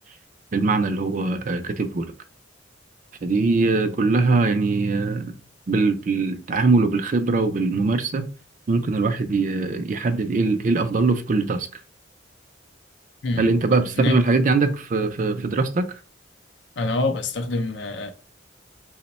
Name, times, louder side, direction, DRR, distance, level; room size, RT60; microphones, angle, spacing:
voice 1, 0.5-2.1 3.2-5.3 5.7-8.3 8.7-11.7 13.4-15.9, right 3 dB, 45° right, 0.4 m, -22 dB
voice 2, 13.2-14.2 16.8-18.1, left 2 dB, 65° left, 0.5 m, -26 dB
3.0 x 2.1 x 4.1 m
head